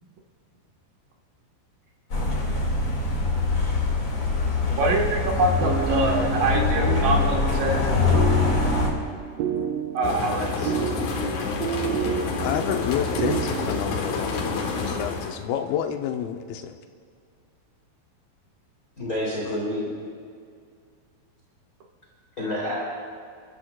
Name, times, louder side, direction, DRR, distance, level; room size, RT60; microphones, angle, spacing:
sound 1, 2.1-8.9, left 4 dB, 35° left, 2.0 m, -23 dB
voice 1, 4.8-8.2 9.9-10.7, right 2 dB, 60° right, 0 dB, 2.8 m, -25 dB
sound 2, 5.3-13.9, right 8 dB, 80° right, 2.9 m, -30 dB
sound 3, 10.0-15.4, left 4 dB, 65° left, 2.0 m, -28 dB
voice 2, 12.4-16.8, left 9 dB, 80° left, 5 dB, 2.2 m, -29 dB
voice 3, 19.0-20.0 22.4-22.8, left 1 dB, 20° left, -6 dB, 3.0 m, -28 dB
30.0 x 13.5 x 2.3 m, 2.2 s
omnidirectional pair, 5.0 m